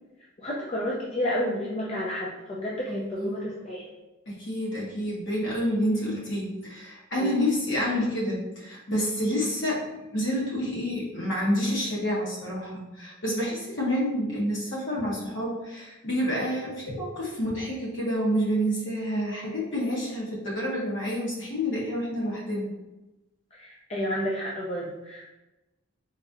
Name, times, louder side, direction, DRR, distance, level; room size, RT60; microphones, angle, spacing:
voice 1, 0.4-3.9 7.2-7.4 23.5-25.3, equal, 30° left, -5 dB, 0.4 m, -31 dB
voice 2, 2.9-3.5 4.3-9.9 10.1-22.7, equal, 60° left, -5 dB, 1.2 m, -28 dB
4.0 x 2.5 x 2.5 m, 1.0 s
head